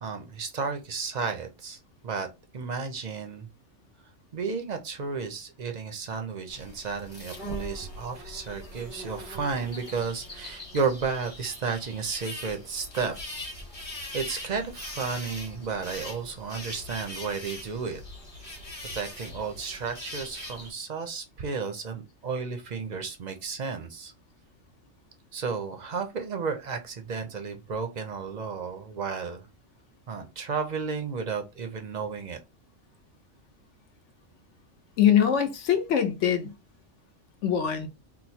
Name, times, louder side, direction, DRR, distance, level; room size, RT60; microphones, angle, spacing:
voice 1, 0.0-1.8 2.0-2.3 2.5-3.5 4.3-13.2 14.1-18.0 18.4-18.5 18.9-24.1 25.3-29.5 30.1-32.4, right 5 dB, 50° right, 0.5 m, -33 dB
sound 1, 6.5-20.7, left 1 dB, 30° left, 1.1 m, -41 dB
voice 2, 35.0-36.5 37.4-37.9, left 9 dB, 75° left, 1.0 m, -23 dB
2.9 x 2.1 x 4.1 m
omnidirectional pair, 1.3 m